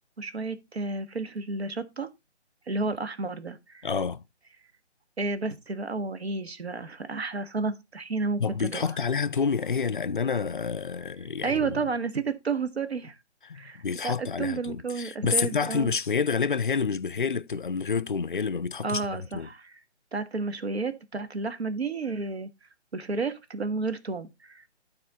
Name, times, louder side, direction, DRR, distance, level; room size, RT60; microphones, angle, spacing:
voice 1, 0.2-2.1 2.7-3.9 5.2-8.8 11.4-13.2 13.5-15.9 18.8-19.7 20.1-22.5 22.9-24.6, right 4 dB, 65° right, 1.3 m, -31 dB
voice 2, 3.8-4.2 8.4-11.8 13.4-19.5, left 5 dB, 45° left, 0.4 m, -28 dB
12.5 x 4.3 x 4.1 m
figure-of-eight pair, 150°, 35 cm